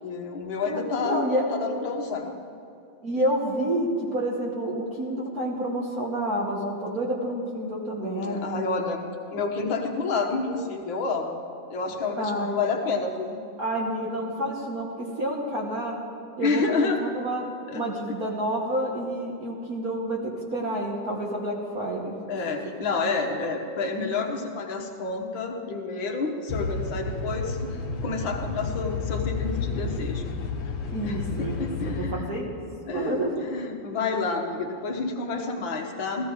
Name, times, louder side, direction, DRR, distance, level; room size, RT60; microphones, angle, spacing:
voice 1, 0.0-2.3 8.0-9.1 9.3-11.4 11.7-13.4 16.4-17.0 17.7-17.8 22.3-30.3 31.0-31.2 31.6-32.4 32.9-36.3, left 4 dB, 65° left, 3 dB, 1.9 m, -29 dB
voice 2, 0.7-1.4 3.0-8.6 12.2-12.6 13.6-16.0 16.4-17.4 17.7-22.2 30.9-32.6 32.9-33.4 36.2-36.3, right 1 dB, 45° right, -2 dB, 1.7 m, -29 dB
sound 1, 26.5-32.1, left 4 dB, 80° left, 1.8 m, -31 dB
15.0 x 15.0 x 4.7 m, 2.7 s
omnidirectional pair, 2.4 m